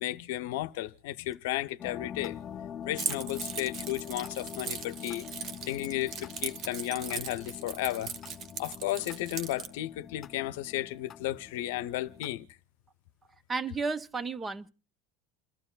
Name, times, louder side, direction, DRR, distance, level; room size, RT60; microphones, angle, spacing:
voice 1, 0.0-2.4 2.8-5.3 5.7-8.1 8.6-12.5, left 15 dB, 85° left, 0.6 m, -34 dB
sound 1, 1.8-12.3, left 9 dB, 35° left, 0.6 m, -44 dB
Keys jangling, 3.0-9.7, right 7 dB, 45° right, 1.0 m, -39 dB
voice 2, 13.5-14.7, right 4 dB, 20° right, 0.7 m, -33 dB
28.5 x 12.5 x 2.3 m
supercardioid pair, 125°, 0 cm